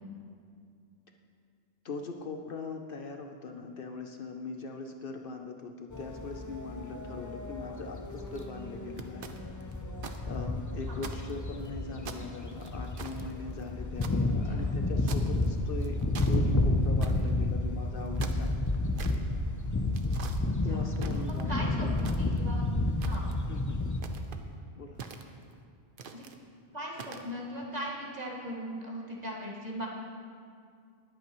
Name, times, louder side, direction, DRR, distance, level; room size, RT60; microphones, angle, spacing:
voice 1, 1.8-9.4 10.3-16.0 16.3-18.5 20.6-21.9 23.5-23.8 24.8-25.0, left 4 dB, 60° left, 4 dB, 0.8 m, -41 dB
sound 1, 5.9-24.0, left 2 dB, 25° left, 0.4 m, -31 dB
sound 2, 8.1-8.4 9.0-10.2 10.5-10.6 11.0-11.7 12.1-14.2 15.1-15.5 15.8-16.4 17.0-17.3 18.0-19.2 19.9-20.4 21.0-21.6 22.0-22.6 23.0-23.5 24.0-24.4 25.0-25.5 26.0-26.4 26.9-27.3, right 5 dB, 55° right, 0.8 m, -44 dB
voice 2, 21.5-22.7 23.0-23.2 26.1-26.2 26.7-29.9, equal, 35° right, -3 dB, 1.8 m, -39 dB
20.5 x 8.5 x 3.1 m, 2.3 s
omnidirectional pair, 1.1 m